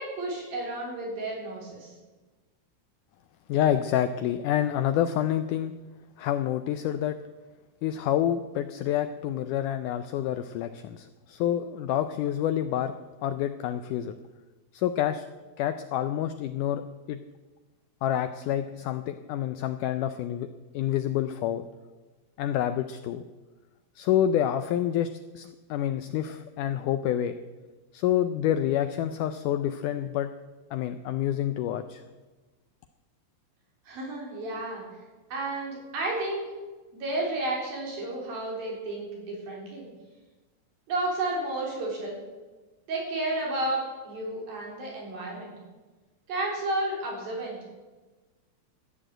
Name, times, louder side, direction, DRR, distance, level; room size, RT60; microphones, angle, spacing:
voice 1, 0.0-2.0 33.9-34.8 35.3-36.5 36.9-39.9 40.9-42.2 42.9-45.5 46.3-47.6, right 2 dB, 70° right, -2 dB, 5.6 m, -32 dB
voice 2, 3.5-5.7 6.2-7.2 7.8-12.9 13.2-14.2 14.7-15.3 15.6-16.8 17.1-17.2 18.0-20.5 20.7-21.6 22.4-23.2 24.0-25.1 25.4-27.3 27.9-30.3 30.7-32.0, left 11 dB, 90° left, 10 dB, 1.8 m, -28 dB
14.0 x 10.0 x 7.7 m, 1.2 s
omnidirectional pair, 4.3 m